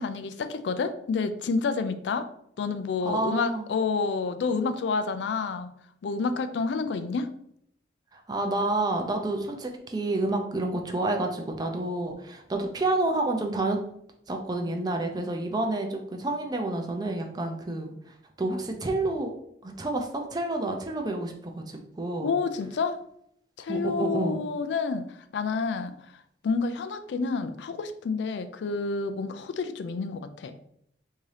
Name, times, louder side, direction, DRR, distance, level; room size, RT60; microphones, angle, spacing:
voice 1, 0.0-2.3 2.6-5.7 6.0-7.3 22.2-23.0 23.6-30.6, left 4 dB, 80° left, 10 dB, 0.3 m, -29 dB
voice 2, 3.1-3.7 8.1-13.8 14.3-19.3 19.6-22.3 23.7-24.4, right 2 dB, 25° right, 3 dB, 0.5 m, -29 dB
3.5 x 2.7 x 3.3 m, 0.71 s
head